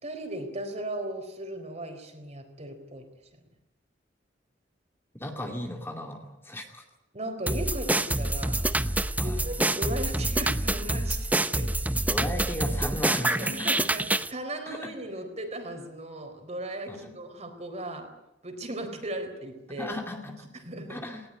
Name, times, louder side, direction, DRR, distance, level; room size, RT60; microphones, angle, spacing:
voice 1, 0.0-3.0 7.1-8.6 9.2-11.3 11.6-11.7 13.3-14.0 14.3-18.1 18.4-19.9 20.5-21.0, right 1 dB, 35° right, 6 dB, 4.3 m, -37 dB
voice 2, 5.2-6.8 9.2-9.4 12.1-13.7 14.7-14.9 16.9-17.0 19.8-20.5 20.9-21.2, left 1 dB, 15° left, 3 dB, 2.4 m, -35 dB
sound 1, 7.5-14.3, right 1 dB, 10° right, 0.8 m, -27 dB
19.5 x 18.5 x 9.8 m, 0.94 s
head